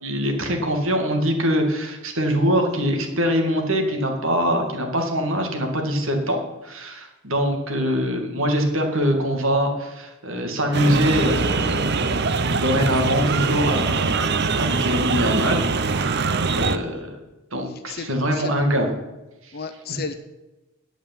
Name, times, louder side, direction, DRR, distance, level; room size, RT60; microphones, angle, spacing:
voice 1, 0.0-16.2 16.5-17.1 17.5-18.9 19.4-19.5, equal, 70° right, 3 dB, 2.4 m, -23 dB
sound 1, 10.7-16.8, right 4 dB, 50° right, 0.7 m, -23 dB
voice 2, 17.7-18.7 19.5-20.1, left 5 dB, 45° left, 9 dB, 0.8 m, -34 dB
8.8 x 8.4 x 9.1 m, 1.0 s
head